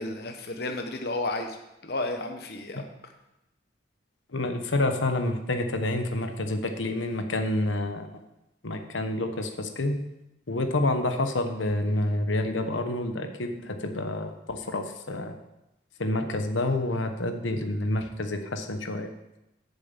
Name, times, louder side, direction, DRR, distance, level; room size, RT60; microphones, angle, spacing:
voice 1, 0.0-1.6 1.8-2.8, left 2 dB, 55° left, 4 dB, 0.9 m, -32 dB
voice 2, 4.3-8.1 8.6-10.0 10.5-15.3 16.0-19.1, left 2 dB, 90° left, 7 dB, 1.1 m, -28 dB
8.0 x 6.9 x 7.3 m, 0.92 s
head